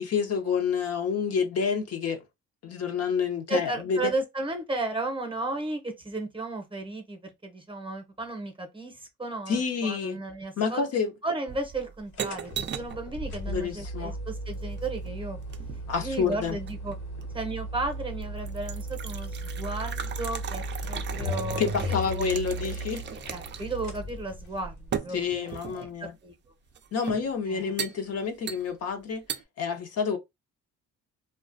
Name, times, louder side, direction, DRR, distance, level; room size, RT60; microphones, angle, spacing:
voice 1, 0.0-2.2 2.6-4.1 9.5-10.2 10.6-11.1 13.5-14.2 15.9-16.6 21.6-23.0 25.1-26.1 26.9-29.2 29.6-30.2, left 6 dB, 55° left, 0.6 m, -28 dB
voice 2, 3.5-10.8 11.2-15.4 16.0-17.0 17.3-22.3 23.1-26.3 27.5-27.6, right 2 dB, 15° right, 0.7 m, -34 dB
sound 1, 11.5-13.0 14.5-15.9 16.7-17.3 17.8-17.9 18.2-23.8 24.1-24.2 24.9-25.9 26.7-27.3 27.8-28.0 28.5-28.9 29.3-29.4, right 8 dB, 40° right, 0.4 m, -37 dB
sound 2, 12.1-25.0, equal, 70° left, 1.1 m, -36 dB
2.3 x 2.2 x 2.5 m
cardioid pair, 90°, 30 cm